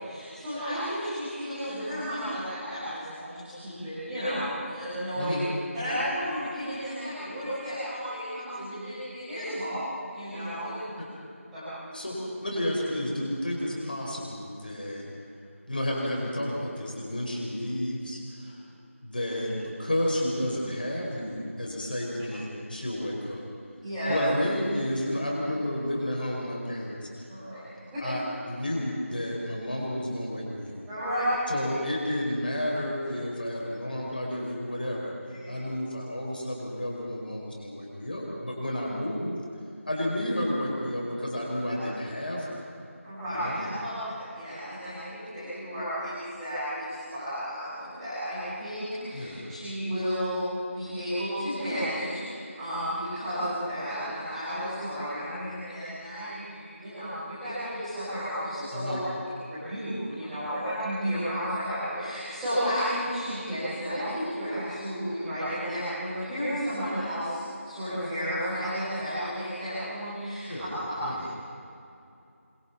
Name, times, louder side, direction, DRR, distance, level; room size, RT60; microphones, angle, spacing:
voice 1, 0.0-5.4 5.7-10.8 11.5-11.7 23.8-24.2 27.3-27.7 27.9-28.0 30.9-31.3 35.3-35.5 41.7-41.8 43.0-59.0 59.5-70.5 70.9-71.0, equal, 5° right, -18 dB, 5.4 m, -33 dB
voice 2, 11.9-15.0 15.7-18.6 19.0-23.4 24.1-27.3 28.0-30.8 31.5-35.1 35.5-39.4 39.9-42.6 43.3-43.7 49.1-49.6 58.7-59.0 70.5-70.7 71.0-71.2, left 1 dB, 40° left, -3 dB, 5.2 m, -31 dB
29.5 x 25.5 x 4.3 m, 2.6 s
figure-of-eight pair, 170°, 8 cm